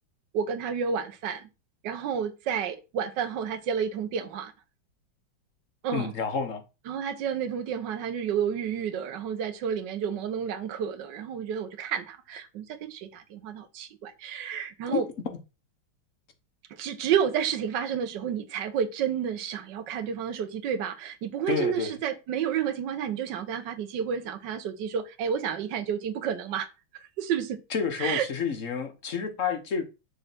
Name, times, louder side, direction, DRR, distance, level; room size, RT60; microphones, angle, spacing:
voice 1, 0.3-1.5 1.8-4.5 5.8-6.1 6.9-15.1 16.8-26.7 27.2-27.6 28.0-28.3, right 8 dB, 65° right, 1.6 m, -30 dB
voice 2, 5.9-6.6 14.9-15.0 21.5-21.9 27.7-29.8, left 6 dB, 45° left, 1.4 m, -29 dB
6.7 x 3.7 x 6.1 m
omnidirectional pair, 2.3 m